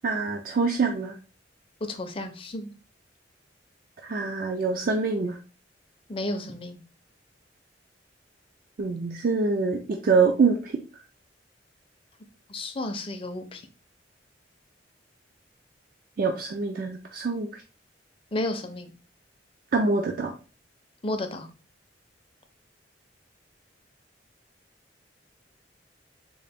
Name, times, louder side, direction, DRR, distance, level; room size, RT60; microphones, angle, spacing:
voice 1, 0.0-1.1 4.0-5.4 8.8-10.7 16.2-17.5 19.7-20.3, right 4 dB, 50° right, 4 dB, 0.4 m, -25 dB
voice 2, 1.9-2.8 6.1-6.8 12.5-13.6 18.3-18.9 21.0-21.5, left 1 dB, 30° left, 7 dB, 0.5 m, -32 dB
3.8 x 2.4 x 3.4 m, 0.35 s
head